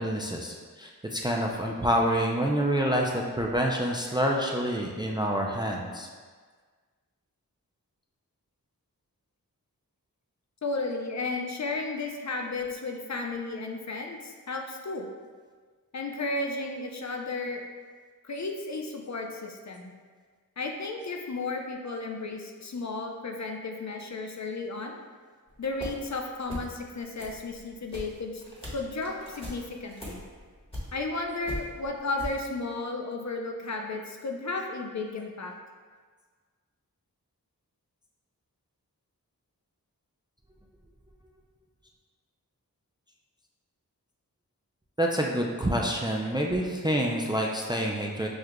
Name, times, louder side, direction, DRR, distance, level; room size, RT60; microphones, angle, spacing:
voice 1, 0.0-3.1 3.4-6.1 45.0-48.3, equal, 15° right, -1 dB, 0.3 m, -27 dB
voice 2, 10.6-15.1 15.9-17.6 18.2-19.9 20.6-25.0 25.6-28.4 28.7-30.2 30.9-35.5, left 3 dB, 50° left, 2 dB, 0.5 m, -33 dB
sound 1, 25.5-26.2 26.4-26.9 27.1-31.2 31.4-32.4, equal, 15° left, 1.1 m, -40 dB
6.2 x 2.4 x 2.2 m, 1.5 s
wide cardioid pair, 45°, 36 cm